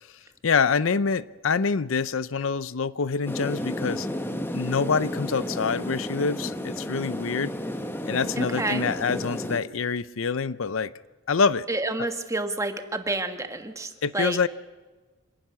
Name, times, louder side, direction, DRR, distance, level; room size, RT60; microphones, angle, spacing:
voice 1, 0.4-4.1 4.5-7.5 8.0-10.9 11.3-11.7 14.0-14.5, left 5 dB, 80° left, 17 dB, 0.6 m, -26 dB
sound 1, 3.2-9.6, equal, 10° left, 1.2 m, -32 dB
voice 2, 8.4-8.9 11.7-14.4, right 2 dB, 15° right, 7 dB, 1.5 m, -29 dB
26.5 x 12.0 x 9.6 m, 1.3 s
head